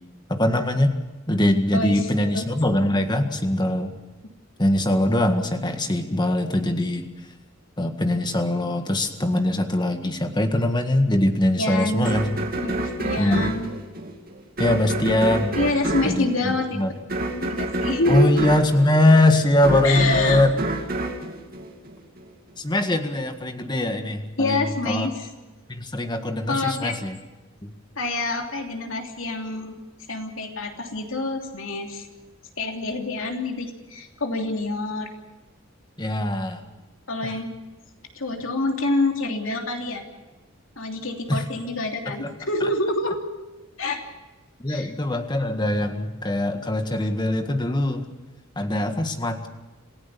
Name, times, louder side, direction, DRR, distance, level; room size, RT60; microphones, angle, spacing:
voice 1, 0.3-0.9 1.3-3.9 4.6-7.1 7.8-12.4 13.2-13.5 14.6-15.6 16.0-16.9 18.1-20.5 22.6-25.1 25.7-27.2 27.6-27.7 36.0-36.6 37.2-37.3 41.3-41.4 42.2-42.3 42.6-42.7 44.6-48.1 48.6-49.5, left 1 dB, 20° left, 6 dB, 1.8 m, -22 dB
voice 2, 1.7-2.5 11.6-12.1 12.6-13.7 15.5-16.7 17.3-18.3 19.8-20.4 24.4-25.3 26.5-27.0 28.0-29.8 30.1-32.1 32.6-35.1 37.1-37.5 38.1-40.0 40.8-43.2 43.8-44.0 44.7-44.9, left 2 dB, 70° left, 3 dB, 3.1 m, -27 dB
sound 1, 12.0-22.3, right 2 dB, 45° right, 2.4 m, -28 dB
27.5 x 16.5 x 7.0 m, 1.1 s
head